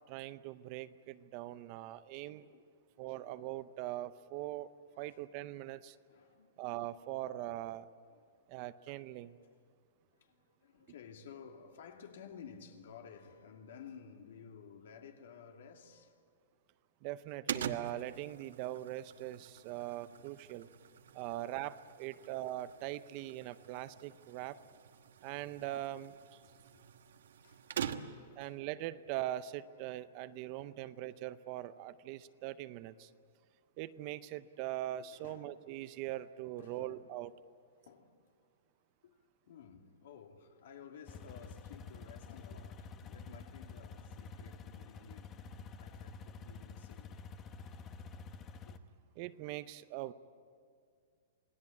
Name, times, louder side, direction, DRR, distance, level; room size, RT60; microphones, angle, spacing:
voice 1, 0.1-2.5 3.0-4.7 5.0-6.0 6.6-7.9 8.5-9.4 17.0-20.7 21.1-24.6 25.2-26.4 28.4-33.1 33.8-37.3 49.2-50.1, right 14 dB, 35° right, 0.6 m, -41 dB
voice 2, 2.2-2.8 3.1-3.3 4.9-5.3 6.1-6.7 8.1-8.3 10.1-16.2 17.5-17.7 21.3-21.4 25.4-25.6 26.4-26.8 27.4-28.7 30.3-30.7 34.9-35.5 36.6-37.1 37.8-38.2 39.0-45.4 45.8-47.2 47.6-47.8 48.7-48.8, left 7 dB, 70° left, 2.6 m, -55 dB
sound 1, 17.5-28.4, right 8 dB, 80° right, 1.3 m, -45 dB
sound 2, 41.1-48.8, left 5 dB, 20° left, 0.9 m, -49 dB
28.0 x 19.0 x 8.6 m
hypercardioid pair, 165°, 0 cm